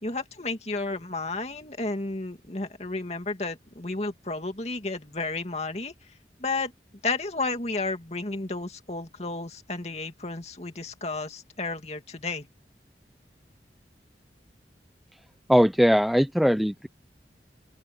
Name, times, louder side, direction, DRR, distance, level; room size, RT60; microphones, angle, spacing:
voice 1, 0.0-5.9 6.4-6.7 7.0-12.5, left 3 dB, 40° left, 2.5 m, -32 dB
voice 2, 15.5-16.9, equal, ahead, 0.4 m, -20 dB
open air
head